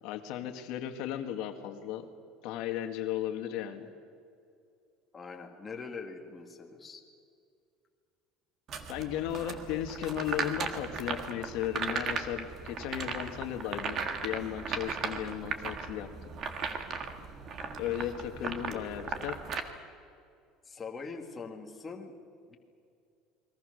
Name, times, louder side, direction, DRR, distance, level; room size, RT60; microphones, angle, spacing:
voice 1, 0.0-2.1 2.4-3.9 8.9-16.1 17.8-19.4, left 11 dB, 60° left, 6 dB, 1.8 m, -35 dB
voice 2, 5.1-7.0 17.6-17.8 18.4-18.9 20.7-22.1 22.5-22.6, left 4 dB, 15° left, 1 dB, 1.8 m, -43 dB
sound 1, 8.7-19.6, right 5 dB, 30° right, 1.7 m, -37 dB
30.0 x 22.0 x 6.5 m, 2.4 s
cardioid pair, 175°, 0 cm